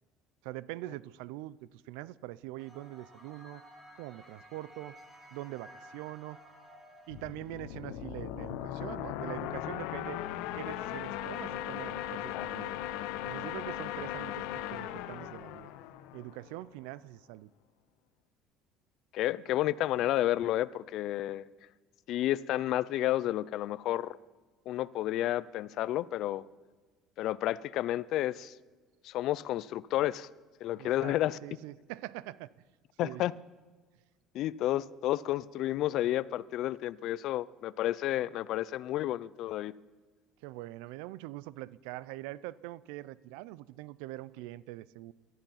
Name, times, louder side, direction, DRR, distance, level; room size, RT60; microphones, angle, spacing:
voice 1, 0.4-3.6 4.0-5.0 5.3-6.4 7.1-10.2 10.5-12.8 13.2-14.4 14.7-15.7 16.1-17.5 30.8-31.2 31.4-32.5 33.0-33.2 40.4-45.1, right 17 dB, 85° right, 0.4 m, -43 dB
sound 1, 2.6-7.6, equal, 15° right, 2.4 m, -54 dB
sound 2, 7.1-16.6, left 12 dB, 80° left, 0.8 m, -38 dB
voice 2, 19.1-21.4 22.1-24.2 24.7-26.4 27.2-28.5 29.0-30.3 30.6-31.4 33.0-33.3 34.3-39.7, left 14 dB, 55° left, 0.4 m, -31 dB
18.0 x 12.5 x 5.7 m
cardioid pair, 145°, 0 cm